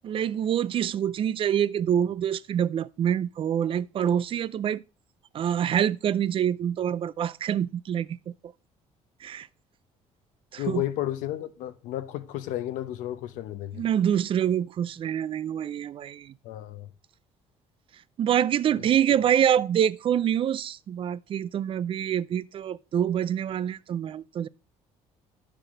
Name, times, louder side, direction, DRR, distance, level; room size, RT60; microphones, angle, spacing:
voice 1, 0.0-4.8 5.3-8.2 9.2-9.5 10.5-10.8 13.7-16.3 18.2-24.5, right 9 dB, 45° right, 0.4 m, -26 dB
voice 2, 10.6-13.8 16.4-16.9 18.7-18.8 19.1-19.2, left 13 dB, 85° left, 0.9 m, -33 dB
10.0 x 6.8 x 3.8 m
cardioid pair, 115°, 13 cm